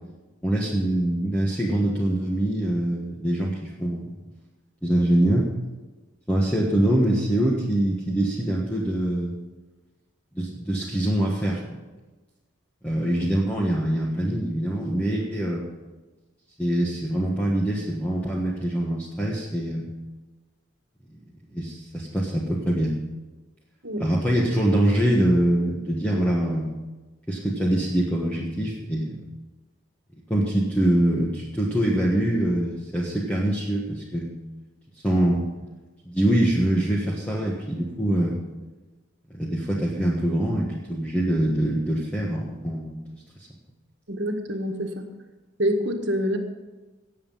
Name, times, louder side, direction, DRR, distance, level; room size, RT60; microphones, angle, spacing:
voice 1, 0.4-4.1 4.8-5.5 6.3-9.3 10.3-11.6 12.8-15.7 16.6-19.9 21.5-23.0 24.0-26.7 27.3-29.3 30.3-34.3 35.0-35.5 36.0-38.4 39.3-43.5, right 1 dB, 5° left, -4 dB, 1.4 m, -24 dB
voice 2, 44.1-45.0 45.6-46.4, equal, 55° right, 4 dB, 1.6 m, -26 dB
18.5 x 7.4 x 5.7 m, 1.2 s
head